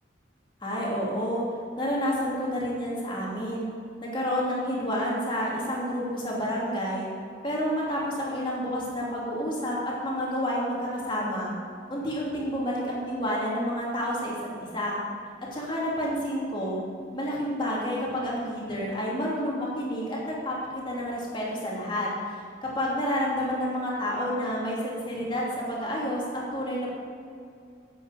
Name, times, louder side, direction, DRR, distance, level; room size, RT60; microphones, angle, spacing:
voice 1, 0.6-1.4 1.8-3.7 4.0-7.1 7.4-11.5 11.9-15.0 15.5-16.8 17.1-22.3 22.6-26.9, equal, 25° left, -5 dB, 2.9 m, -29 dB
10.0 x 8.0 x 8.2 m, 2.4 s
head